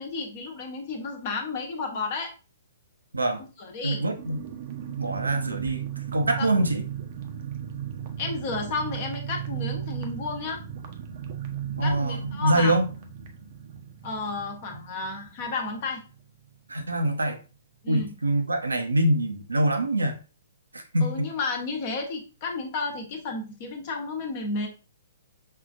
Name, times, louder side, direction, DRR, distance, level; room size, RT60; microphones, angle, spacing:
voice 1, 0.0-2.3 3.6-4.0 6.4-6.5 8.2-10.6 11.8-12.8 14.0-16.0 17.8-18.1 21.0-24.7, left 4 dB, 45° left, 3 dB, 0.9 m, -32 dB
voice 2, 3.8-4.4 5.0-5.8 6.1-6.8 11.8-12.9 16.7-17.4 17.9-20.2 20.7-21.3, right 1 dB, 80° right, 7 dB, 0.6 m, -24 dB
sound 1, 4.2-16.5 16.8-16.9 17.2-17.5, right 9 dB, 45° right, 0.6 m, -36 dB
5.3 x 2.4 x 2.5 m, 0.33 s
figure-of-eight pair, 120°, 0 cm